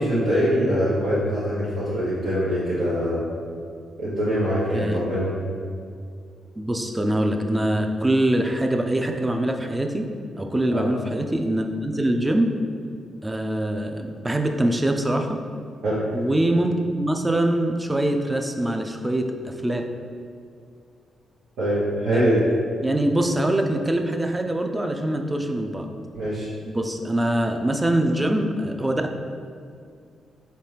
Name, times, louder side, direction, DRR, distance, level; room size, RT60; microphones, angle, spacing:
voice 1, 0.0-3.2 4.0-5.3 10.7-10.9 15.8-16.0 21.6-22.4 26.1-26.5, equal, 80° right, -12 dB, 1.1 m, -23 dB
voice 2, 6.6-10.1 10.4-12.5 13.2-15.4 16.1-19.8 22.1-22.3 22.8-25.9 26.7-29.2, right 1 dB, 15° right, 4 dB, 0.4 m, -23 dB
4.3 x 3.0 x 3.3 m, 2.2 s
cardioid pair, 80°, 0 cm